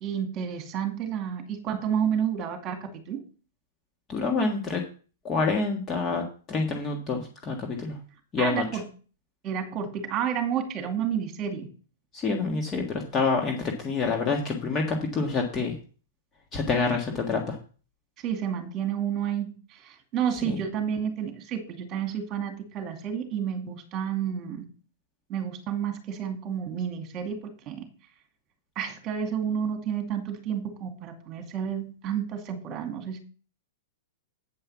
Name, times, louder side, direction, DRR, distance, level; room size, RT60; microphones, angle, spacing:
voice 1, 0.0-3.2 8.4-8.8 9.4-11.7 18.2-24.6 25.3-27.8 28.8-33.2, right 8 dB, 25° right, 6 dB, 2.3 m, -30 dB
voice 2, 4.1-4.8 5.2-8.0 8.3-8.7 12.1-15.8 16.5-17.6 20.4-20.5, left 4 dB, 20° left, 2 dB, 1.6 m, -27 dB
8.8 x 5.5 x 7.1 m, 0.38 s
hypercardioid pair, 155°, 0 cm